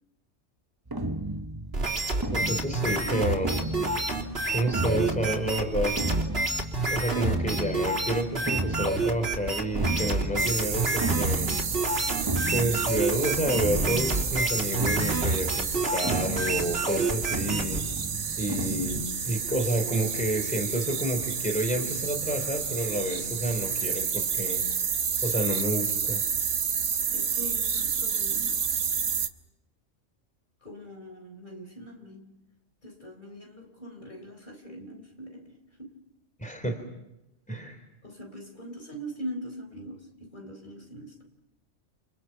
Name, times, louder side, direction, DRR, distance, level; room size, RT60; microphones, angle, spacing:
sound 1, 0.9-19.1, right 2 dB, 20° right, 1.0 m, -34 dB
sound 2, 1.7-17.8, right 2 dB, 55° right, 3.5 m, -29 dB
voice 1, 2.3-3.7 4.5-6.0 6.9-11.5 12.5-17.8 18.4-24.6 25.2-26.2 36.4-36.8 37.5-37.8, right 1 dB, 5° left, 5 dB, 3.5 m, -29 dB
sound 3, 10.4-29.3, right 6 dB, 70° right, 1.4 m, -30 dB
voice 2, 27.1-28.7 30.6-32.5 32.8-36.0 38.0-41.2, equal, 40° left, 3 dB, 4.4 m, -42 dB
29.5 x 28.5 x 5.9 m, 0.92 s
omnidirectional pair, 1.3 m